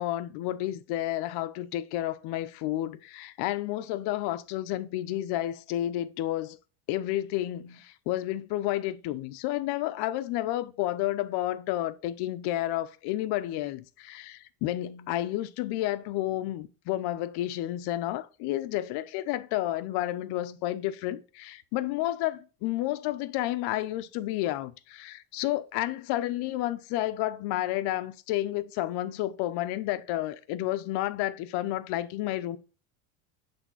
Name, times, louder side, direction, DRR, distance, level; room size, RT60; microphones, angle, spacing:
voice 1, 0.0-6.6 6.9-32.6, left 14 dB, 60° left, 0.8 m, -31 dB
8.1 x 3.5 x 4.0 m
cardioid pair, 140°, 44 cm